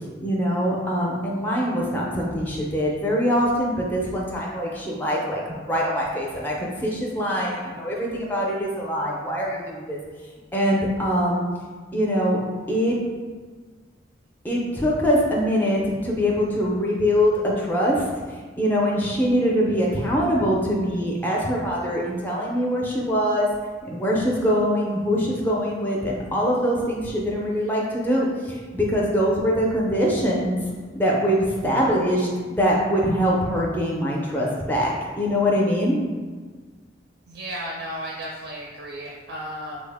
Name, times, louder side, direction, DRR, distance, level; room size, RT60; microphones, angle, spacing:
voice 1, 0.2-10.0 10.5-11.4 11.9-12.4 12.7-13.0 14.4-23.5 23.8-30.7 31.0-36.0, equal, 10° left, -3 dB, 0.4 m, -23 dB
voice 2, 37.3-39.8, equal, 60° right, -2 dB, 0.4 m, -34 dB
3.8 x 2.0 x 3.3 m, 1.5 s
head